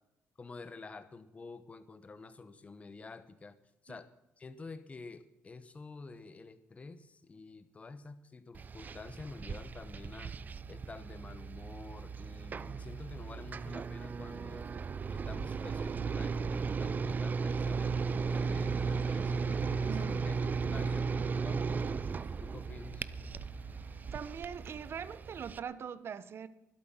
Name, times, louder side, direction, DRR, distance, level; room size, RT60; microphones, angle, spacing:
voice 1, 0.4-3.6 3.8-4.1 4.4-10.3 10.7-14.7 15.1-19.4 20.0-20.4 20.7-23.1, left 3 dB, 25° left, 12 dB, 1.1 m, -49 dB
sound 1, 8.5-25.6, right 5 dB, 35° right, 0.5 m, -36 dB
sound 2, 12.7-24.4, left 3 dB, 85° left, 2.3 m, -53 dB
voice 2, 19.8-20.2 24.1-26.5, right 7 dB, 50° right, 15 dB, 1.0 m, -41 dB
23.5 x 8.4 x 5.8 m, 0.86 s
cardioid pair, 125°, 5 cm